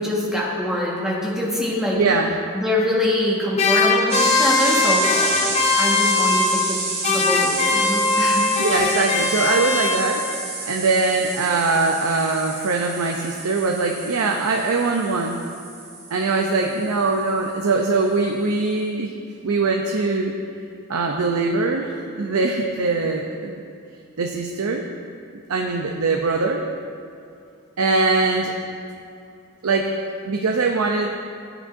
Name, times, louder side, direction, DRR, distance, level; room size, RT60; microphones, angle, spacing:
voice 1, 0.0-2.0 2.5-6.8 7.1-8.4, left 1 dB, 5° right, -5 dB, 1.4 m, -24 dB
voice 2, 1.9-2.4 8.6-10.3 10.7-15.4 16.1-19.1 19.4-20.3 20.9-23.5 24.2-24.8 25.5-26.6 27.8-28.5 29.6-29.9 30.2-31.1, right 3 dB, 85° right, 1 dB, 0.6 m, -22 dB
sound 1, 3.5-6.8 7.0-10.4, left 4 dB, 30° left, 0.6 m, -21 dB
sound 2, 4.1-17.7, right 3 dB, 45° right, 2.5 m, -30 dB
13.5 x 8.9 x 2.6 m, 2.4 s
head